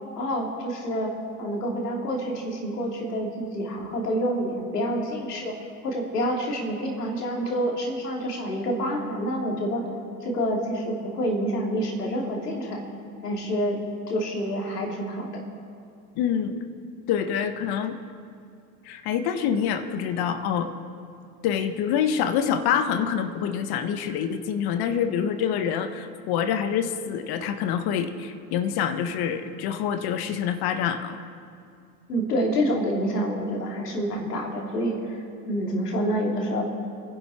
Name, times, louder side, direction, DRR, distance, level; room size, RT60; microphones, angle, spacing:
voice 1, 0.2-1.1 1.4-5.5 5.8-9.8 10.2-12.8 13.2-13.8 14.1-15.3 32.1-36.6, equal, 90° left, -1 dB, 3.1 m, -27 dB
voice 2, 16.1-16.6 17.1-18.0 18.8-20.7 21.4-31.2, left 8 dB, 55° left, 8 dB, 1.5 m, -26 dB
27.5 x 11.0 x 4.5 m, 2.4 s
hypercardioid pair, 75°, 46 cm